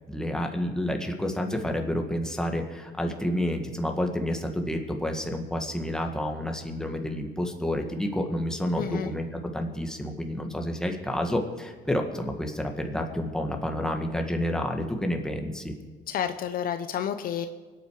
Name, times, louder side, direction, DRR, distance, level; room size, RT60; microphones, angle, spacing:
voice 1, 0.1-9.3 9.5-15.7, left 1 dB, 5° left, 3 dB, 1.8 m, -29 dB
voice 2, 8.8-9.1 16.1-17.5, left 9 dB, 60° left, 9 dB, 0.8 m, -30 dB
24.0 x 9.0 x 4.9 m, 1.4 s
cardioid pair, 110°, 17 cm